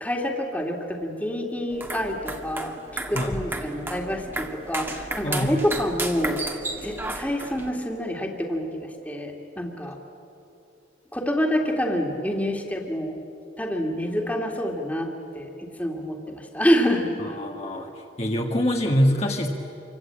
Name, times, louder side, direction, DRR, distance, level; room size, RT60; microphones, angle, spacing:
voice 1, 0.0-6.5 6.8-10.0 11.1-13.2 13.6-17.3, equal, 10° left, 2 dB, 2.2 m, -27 dB
sound 1, 1.7-7.7, right 2 dB, 10° right, 1.7 m, -33 dB
voice 2, 5.2-5.6 9.9-10.0 17.2-19.5, equal, 35° left, 1 dB, 1.7 m, -25 dB
27.0 x 25.0 x 8.7 m, 2.9 s
head